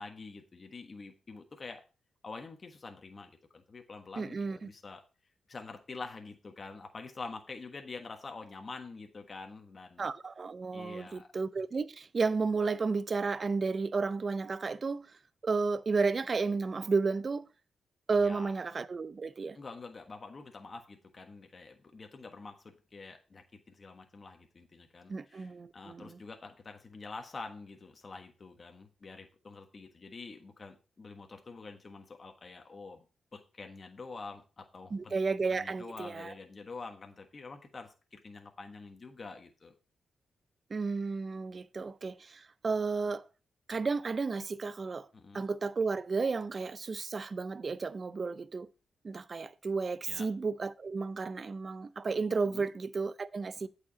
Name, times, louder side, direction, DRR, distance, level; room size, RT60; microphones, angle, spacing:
voice 1, 0.0-1.8 2.2-5.0 5.5-10.1 10.7-11.3 18.2-18.5 19.5-33.0 33.3-35.1 35.5-39.7 45.1-45.4 50.1-50.3 52.4-52.7 53.6-53.7, left 4 dB, 40° left, 1.3 m, -46 dB
voice 2, 4.2-4.6 10.0-15.1 15.4-17.4 18.1-19.6 25.1-26.2 34.9-36.3 40.7-43.3 43.7-45.1 45.3-48.7 49.0-53.7, right 4 dB, 45° right, 0.5 m, -32 dB
8.4 x 4.9 x 4.9 m
cardioid pair, 75°, 0 cm